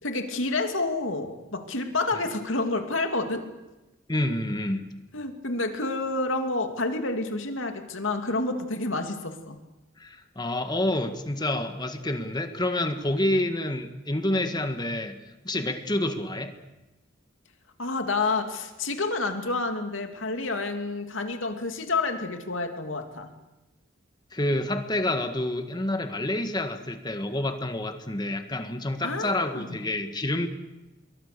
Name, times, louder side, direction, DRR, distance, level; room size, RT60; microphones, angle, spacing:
voice 1, 0.0-3.5 5.1-9.6 17.8-23.3 29.0-29.8, left 3 dB, 75° left, 6 dB, 2.7 m, -29 dB
voice 2, 4.1-4.8 10.0-15.1 15.4-16.5 24.3-30.5, left 1 dB, 20° left, 8 dB, 1.7 m, -28 dB
27.0 x 22.5 x 6.9 m, 1.0 s
head